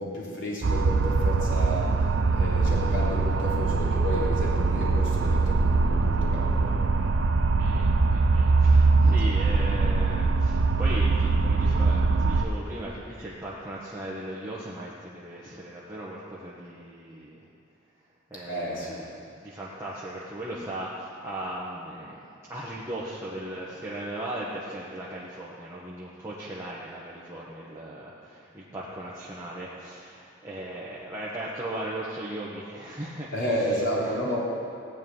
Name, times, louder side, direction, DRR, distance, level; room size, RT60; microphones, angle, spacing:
voice 1, 0.0-2.0 2.3-6.8 18.4-19.0 33.3-34.4, equal, 80° left, -6 dB, 3.5 m, -31 dB
sound 1, 0.6-12.5, right 3 dB, 85° right, 0.6 m, -22 dB
voice 2, 7.5-17.4 18.3-22.2 22.5-34.3, right 1 dB, 15° right, -8 dB, 1.3 m, -37 dB
15.5 x 5.3 x 9.5 m, 2.7 s
head